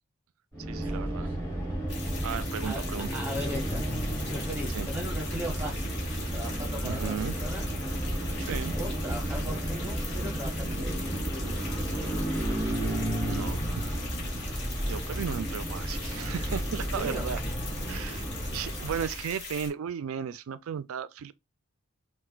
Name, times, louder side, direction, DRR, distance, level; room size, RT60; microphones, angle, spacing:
sound 1, 0.5-19.3, right 1 dB, 15° left, 1.1 m, -32 dB
voice 1, 0.7-1.3 2.2-3.1 4.7-4.9 6.8-7.4 8.5-8.7 13.2-13.9 14.5-14.6 14.9-17.4 17.9-18.2 18.5-21.3, right 7 dB, 70° right, 0.4 m, -35 dB
sound 2, 1.9-19.7, left 3 dB, 55° left, 1.2 m, -41 dB
voice 2, 3.1-3.9 4.3-6.0 6.3-7.7 8.7-11.6 16.8-17.3, equal, 10° right, 0.7 m, -38 dB
4.3 x 2.2 x 2.3 m
head